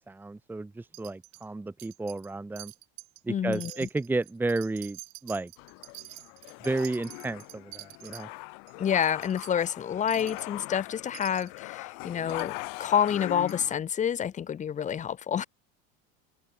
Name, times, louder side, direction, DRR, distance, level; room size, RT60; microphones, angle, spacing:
voice 1, 0.0-2.7 3.2-5.5 6.6-8.3, right 2 dB, 5° right, 1.4 m, -32 dB
Wind chime, 0.9-1.5 1.8-2.3 2.6-3.2 3.5-8.2 8.7-8.8 9.0-9.5 10.1-10.5 11.1-11.6 12.3-12.5 13.1-13.2 13.5-13.6, right 27 dB, 90° right, 6.6 m, -47 dB
voice 2, 3.3-3.9 8.8-12.5 12.8-15.4, left 8 dB, 25° left, 2.6 m, -28 dB
sound 1, 5.6-13.8, left 40 dB or more, 70° left, 2.5 m, -41 dB
cardioid pair, 165°, 30 cm